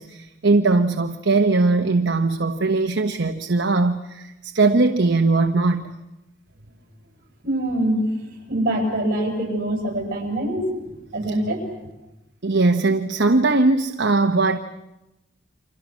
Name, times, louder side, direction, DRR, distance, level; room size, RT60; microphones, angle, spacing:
voice 1, 0.0-5.9 12.4-14.6, right 3 dB, 70° right, 5 dB, 1.0 m, -20 dB
voice 2, 7.4-8.0 8.5-10.7 11.1-11.6, right 1 dB, 50° right, 1 dB, 7.9 m, -24 dB
30.0 x 25.5 x 6.3 m, 0.95 s
head